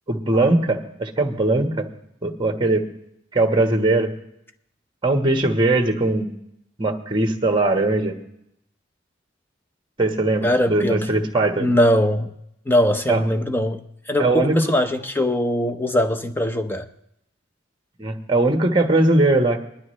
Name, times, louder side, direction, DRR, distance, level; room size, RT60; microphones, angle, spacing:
voice 1, 0.1-1.9 2.2-2.9 3.3-4.1 5.0-6.3 6.8-8.2 10.0-11.7 13.1-13.2 14.2-14.6 18.0-19.6, right 2 dB, 25° right, 5 dB, 1.3 m, -20 dB
voice 2, 10.4-11.1 11.6-12.3 12.7-16.9, left 1 dB, 10° left, 8 dB, 0.7 m, -21 dB
20.5 x 12.0 x 3.2 m, 0.77 s
head